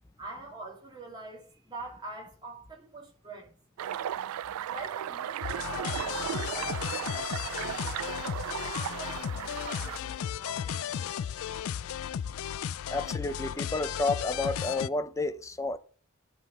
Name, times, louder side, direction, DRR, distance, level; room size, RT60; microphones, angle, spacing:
voice 1, 0.2-3.5 4.7-7.6 8.5-11.2, right 2 dB, 20° right, 2.5 m, -44 dB
sound 1, 3.8-10.0, right 10 dB, 85° right, 0.3 m, -36 dB
sound 2, 5.4-14.9, left 9 dB, 70° left, 0.3 m, -35 dB
voice 2, 12.9-15.8, left 2 dB, 15° left, 0.5 m, -31 dB
11.5 x 4.0 x 5.3 m
head